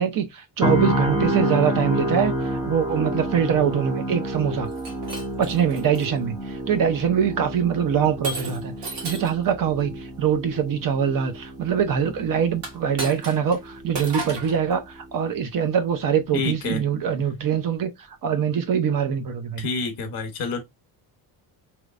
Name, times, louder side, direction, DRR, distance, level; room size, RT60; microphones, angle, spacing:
voice 1, 0.0-2.3 2.7-4.7 5.4-17.9 18.2-19.6, right 8 dB, 50° right, 0.8 m, -23 dB
sound 1, 0.6-14.6 15.0-15.2, equal, 10° right, 0.7 m, -29 dB
Shatter, 4.7-6.1 6.7-7.1 8.2-9.4 12.6-13.6 13.9-14.6, right 3 dB, 70° right, 1.7 m, -34 dB
voice 2, 16.3-16.8 19.6-20.6, left 4 dB, 55° left, 1.2 m, -28 dB
3.3 x 3.0 x 2.5 m
cardioid pair, 150°, 43 cm